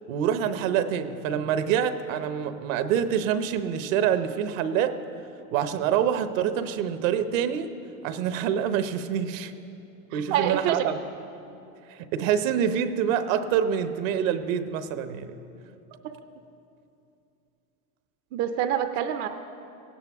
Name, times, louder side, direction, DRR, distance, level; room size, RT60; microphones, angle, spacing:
voice 1, 0.1-5.0 5.5-7.7 8.0-9.5 10.1-11.0 11.9-15.4, right 8 dB, 65° right, 11 dB, 0.9 m, -26 dB
voice 2, 10.1-10.9 18.3-19.3, right 10 dB, 40° right, 8 dB, 0.6 m, -26 dB
17.0 x 16.5 x 3.6 m, 2.7 s
supercardioid pair, 130°, 44 cm